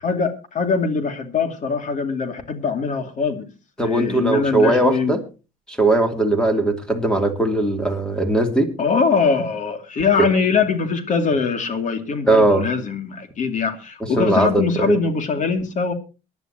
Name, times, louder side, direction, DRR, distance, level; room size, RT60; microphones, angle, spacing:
voice 1, 0.0-3.4 3.8-5.2 8.8-15.9, left 5 dB, 50° left, 8 dB, 2.6 m, -22 dB
voice 2, 3.8-5.2 5.7-8.7 10.2-10.3 12.3-12.6 14.0-14.9, right 2 dB, 5° left, 6 dB, 2.9 m, -19 dB
23.5 x 10.5 x 2.9 m, 0.31 s
cardioid pair, 110°, 17 cm